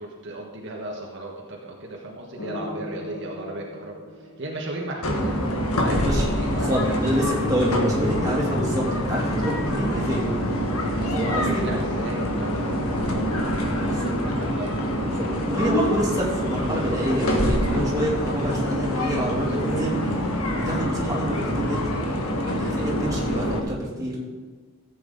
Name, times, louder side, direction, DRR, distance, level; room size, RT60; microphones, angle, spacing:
voice 1, 0.0-5.3 5.8-7.1 11.0-13.6 13.9-14.8, right 1 dB, 55° right, -1 dB, 1.4 m, -36 dB
sound 1, 2.4-5.5 7.2-8.9, left 1 dB, 70° left, 1.9 m, -40 dB
sound 2, 5.0-23.6, equal, 85° left, 1.7 m, -25 dB
voice 2, 5.9-6.2 6.5-10.2 11.1-11.7 13.8-14.1 15.0-19.9 20.5-21.9 22.4-24.2, equal, 15° right, -5 dB, 2.7 m, -27 dB
14.5 x 8.5 x 4.0 m, 1.4 s
head